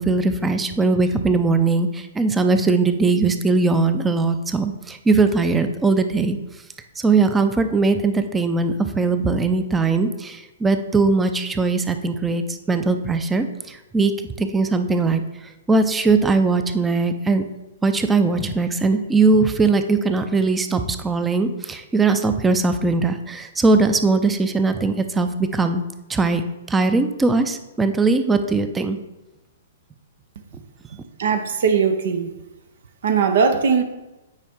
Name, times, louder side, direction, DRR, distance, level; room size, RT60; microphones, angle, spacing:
voice 1, 0.0-6.4 7.0-12.4 12.7-14.1 14.4-15.2 15.7-17.4 17.8-25.8 26.1-26.4 26.7-29.0, right 3 dB, 10° right, 9 dB, 0.6 m, -20 dB
voice 2, 31.2-32.3 33.0-33.8, right 6 dB, 65° right, 8 dB, 0.8 m, -19 dB
9.0 x 4.6 x 3.7 m, 1.0 s
figure-of-eight pair, 115°, 0 cm